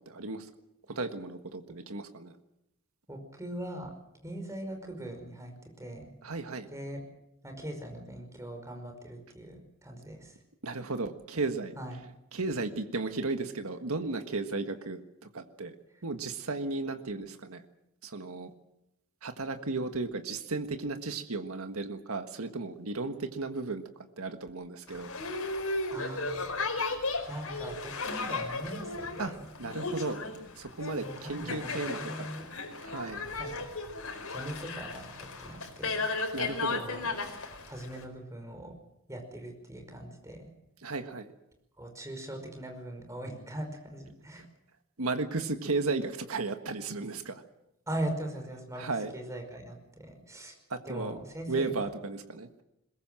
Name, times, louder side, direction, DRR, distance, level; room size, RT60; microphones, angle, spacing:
voice 1, 1.0-2.3 6.2-6.7 10.6-11.7 12.3-15.0 15.3-15.7 16.0-17.6 18.1-18.5 19.2-23.8 24.2-25.1 29.2-29.3 29.6-30.2 30.8-31.0 31.3-32.0 32.9-33.2 36.3-36.8 40.8-41.2 45.0-47.3 48.8-49.1 50.7-51.2 51.5-51.9 52.3-52.6, right 3 dB, 80° right, 7 dB, 1.6 m, -34 dB
voice 2, 3.1-3.9 4.2-6.1 6.7-7.0 7.4-10.4 11.7-12.1 15.9-16.0 25.9-26.6 27.3-29.5 30.8-32.5 33.4-33.7 34.3-36.1 36.7-37.1 37.7-38.8 39.1-40.5 41.8-44.4 47.9-50.6 50.8-51.9, right 1 dB, 15° right, 4 dB, 5.1 m, -41 dB
Boat Water vehicle, 24.9-38.0, left 3 dB, 75° left, 4.8 m, -35 dB
22.0 x 21.5 x 7.7 m, 0.86 s
head